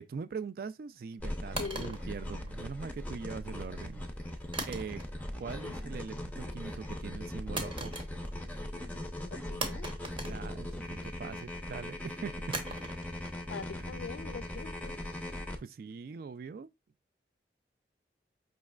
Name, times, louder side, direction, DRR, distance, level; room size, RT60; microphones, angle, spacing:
voice 1, 0.0-4.0 4.3-5.0 5.4-7.9 10.3-12.6 15.6-16.7, right 5 dB, 55° right, 0.3 m, -42 dB
sound 1, 1.2-15.6, left 1 dB, 10° left, 0.5 m, -40 dB
voice 2, 1.6-2.0 9.3-9.9 13.5-15.0, left 5 dB, 80° left, 0.4 m, -42 dB
sound 2, 1.6-3.0 4.5-5.4 5.7-6.1 7.6-8.5 8.8-8.9 9.6-11.1 12.5-15.5, right 2 dB, 30° right, 0.8 m, -41 dB
5.1 x 3.2 x 2.4 m
head